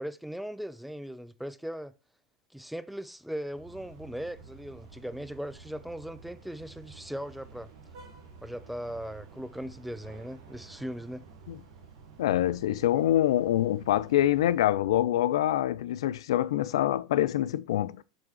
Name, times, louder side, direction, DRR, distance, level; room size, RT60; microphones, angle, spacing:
voice 1, 0.0-1.9 2.5-7.7 8.4-11.2, equal, ahead, 0.5 m, -38 dB
sound 1, 3.5-14.7, right 5 dB, 60° right, 1.5 m, -51 dB
voice 2, 12.2-18.0, left 12 dB, 65° left, 0.3 m, -25 dB
7.6 x 3.6 x 4.7 m
figure-of-eight pair, 85°, 3 cm